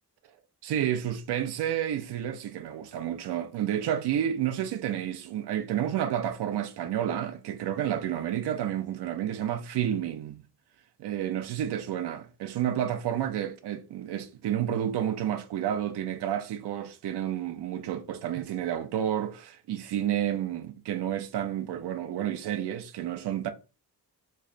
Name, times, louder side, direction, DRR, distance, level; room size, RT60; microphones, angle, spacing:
voice 1, 0.6-10.4 11.0-23.5, right 10 dB, 90° right, 0.6 m, -30 dB
3.7 x 3.2 x 2.5 m
wide cardioid pair, 155°, 39 cm